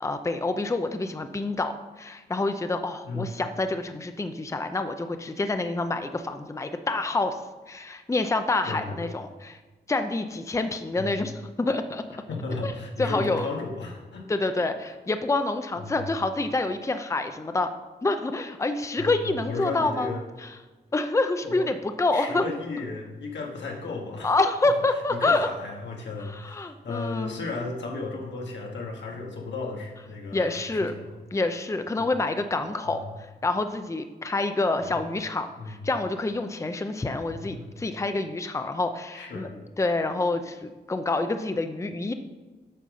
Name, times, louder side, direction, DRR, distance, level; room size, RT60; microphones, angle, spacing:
voice 1, 0.0-7.4 7.7-9.6 9.9-12.0 12.6-12.7 13.0-13.5 14.3-17.7 18.0-20.1 20.4-20.5 20.9-22.4 24.2-25.5 26.3-27.4 30.3-30.9 31.3-39.5 39.8-42.1, left 2 dB, 15° left, 8 dB, 0.6 m, -27 dB
voice 2, 8.7-9.1 11.0-11.2 12.3-14.3 15.8-16.1 19.0-20.2 21.4-21.7 22.1-24.4 25.1-31.1 32.0-32.1 32.9-33.0 34.8-35.0 35.6-35.8 37.3-37.8 39.1-39.5, left 3 dB, 85° left, 0 dB, 1.7 m, -34 dB
8.6 x 5.3 x 6.3 m, 1.3 s
wide cardioid pair, 100°, 18 cm